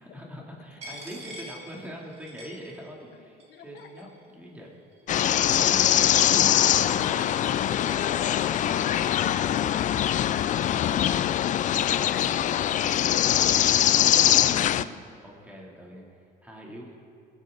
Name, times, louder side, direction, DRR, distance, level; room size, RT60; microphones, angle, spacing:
voice 1, 0.0-4.7 5.1-7.7 8.3-9.0 14.3-16.0 16.4-16.9, equal, 10° right, -3 dB, 3.0 m, -43 dB
Coin (dropping), 0.8-3.1 3.4-4.2 4.9-9.1, equal, 40° right, 2.7 m, -47 dB
voice 2, 3.1-4.1 8.9-10.4 11.7-13.7, left 7 dB, 75° left, 8 dB, 1.1 m, -45 dB
sound 1, 5.1-14.8, left 11 dB, 50° left, 0.4 m, -22 dB
21.5 x 9.6 x 4.0 m, 2.5 s
cardioid pair, 110°, 17 cm